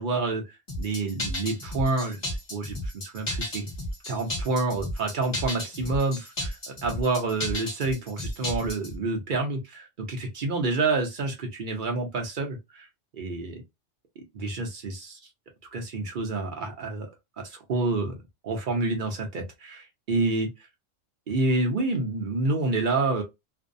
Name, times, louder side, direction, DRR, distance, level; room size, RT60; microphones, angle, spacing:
voice 1, 0.0-3.7 4.1-12.9 13.1-13.6 14.3-15.2 15.7-17.1 17.4-18.2 18.4-20.5 21.3-23.2, right 3 dB, 50° right, 0.7 m, -28 dB
sound 1, 0.7-9.0, left 1 dB, 25° left, 0.6 m, -33 dB
2.6 x 2.0 x 2.5 m
omnidirectional pair, 1.3 m